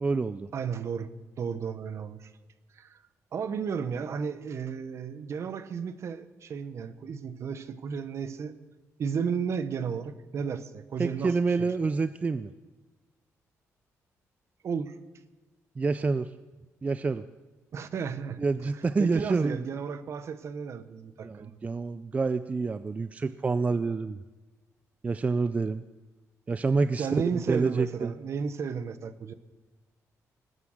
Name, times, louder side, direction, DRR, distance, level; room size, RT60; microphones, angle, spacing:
voice 1, 0.0-0.5 11.0-12.5 15.8-16.3 16.8-17.2 18.4-19.6 21.2-24.2 25.0-25.8 26.5-27.1 27.3-28.1, right 4 dB, 25° right, 13 dB, 0.4 m, -27 dB
voice 2, 0.5-1.1 1.4-2.3 2.8-3.0 3.3-8.5 9.0-11.7 14.6-14.9 17.7-18.4 19.0-21.6 27.0-29.3, right 6 dB, 55° right, 13 dB, 1.0 m, -33 dB
20.0 x 9.5 x 6.5 m, 1.2 s
cardioid pair, 120°, 6 cm